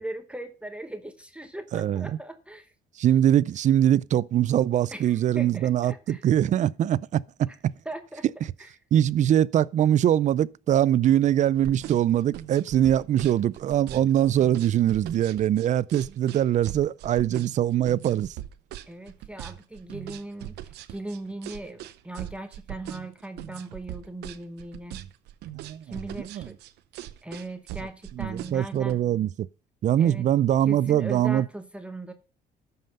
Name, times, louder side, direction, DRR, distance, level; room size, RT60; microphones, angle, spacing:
voice 1, 0.0-2.7 4.9-6.3 7.5-7.6 7.8-8.2 8.6-8.7 18.9-25.0 25.8-26.6 27.2-29.0 30.0-30.3 30.7-32.1, right 2 dB, 5° right, 1.0 m, -39 dB
voice 2, 1.7-2.1 3.0-7.7 8.9-18.3 25.7-26.5 28.2-29.5 29.8-31.5, right 11 dB, 45° right, 0.4 m, -23 dB
sound 1, 11.5-28.9, right 13 dB, 80° right, 0.8 m, -40 dB
13.0 x 5.7 x 5.4 m
cardioid pair, 110°, 17 cm